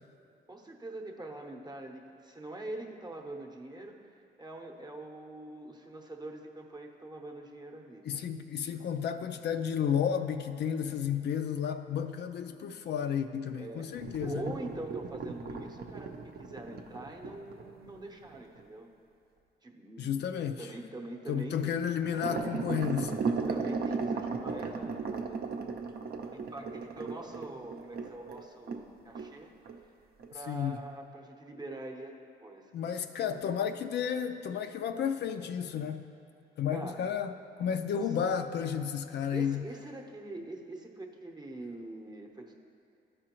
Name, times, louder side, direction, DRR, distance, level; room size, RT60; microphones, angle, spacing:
voice 1, 0.5-8.2 13.5-13.9 14.2-18.9 19.6-20.2 20.6-21.9 23.3-25.6 26.3-29.5 30.3-32.7 36.7-37.1 37.9-38.1 39.3-42.5, right 2 dB, 20° right, 2 dB, 0.8 m, -44 dB
voice 2, 8.1-14.5 20.0-20.7 21.3-23.2 30.5-30.8 32.7-36.0 36.6-37.3 37.6-39.7, left 8 dB, 60° left, 8 dB, 0.4 m, -32 dB
sound 1, 14.0-18.6 22.0-28.9 29.1-29.3 29.7-29.8 30.2-30.3, right 4 dB, 50° right, 0.7 m, -36 dB
12.5 x 4.9 x 3.0 m, 2.5 s
cardioid pair, 90°, 20 cm